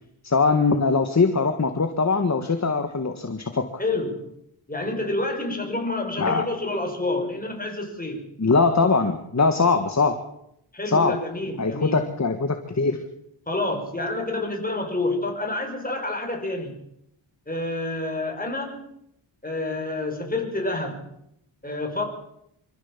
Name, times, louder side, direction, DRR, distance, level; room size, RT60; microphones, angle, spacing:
voice 1, 0.2-3.7 6.2-6.4 8.4-10.2 10.9-11.2 11.6-13.0, left 4 dB, 35° left, 7 dB, 1.8 m, -21 dB
voice 2, 3.8-4.3 4.7-8.2 10.7-12.0 13.5-16.8 17.5-18.8 19.4-21.0 21.6-22.0, left 2 dB, 15° left, 2 dB, 5.4 m, -28 dB
26.0 x 15.0 x 7.4 m, 0.78 s
wide cardioid pair, 120°, 50 cm